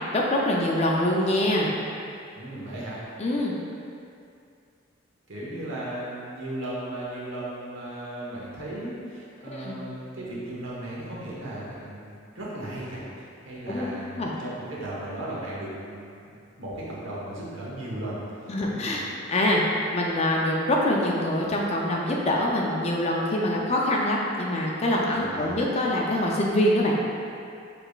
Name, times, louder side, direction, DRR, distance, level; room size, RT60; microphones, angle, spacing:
voice 1, 0.1-1.7 3.2-3.5 9.5-9.8 13.7-13.8 14.2-14.3 18.5-27.0, left 1 dB, 30° left, -2 dB, 0.4 m, -24 dB
voice 2, 2.3-3.0 5.3-19.0 25.2-25.6, right 1 dB, 75° right, -7 dB, 1.1 m, -36 dB
5.6 x 3.4 x 2.4 m, 2.4 s
head